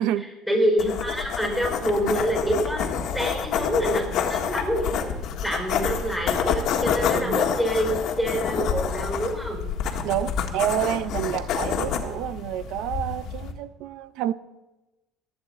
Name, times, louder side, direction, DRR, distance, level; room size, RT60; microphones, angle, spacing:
voice 1, 0.5-2.9 3.1-5.1 5.4-9.6 10.0-10.5, equal, 5° right, 0 dB, 5.1 m, -26 dB
sound 1, 0.8-13.5, left 7 dB, 60° left, 1.5 m, -28 dB
voice 2, 7.1-7.4 10.0-14.3, right 12 dB, 80° right, 16 dB, 0.6 m, -28 dB
23.5 x 8.8 x 4.2 m, 1.1 s
cardioid pair, 135°, 0 cm